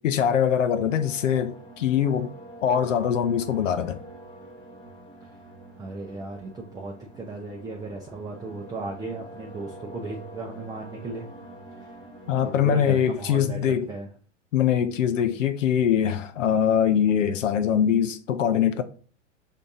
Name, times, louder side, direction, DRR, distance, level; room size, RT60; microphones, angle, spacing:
voice 1, 0.0-2.3 2.6-4.0 12.3-13.9 14.5-18.8, left 8 dB, 85° left, 0.6 m, -23 dB
sound 1, 0.6-12.6, right 1 dB, 10° left, 0.9 m, -45 dB
voice 2, 5.8-11.3 11.8-12.0 12.4-14.1, right 3 dB, 10° right, 0.5 m, -36 dB
5.1 x 2.8 x 3.5 m
hypercardioid pair, 110°, 37 cm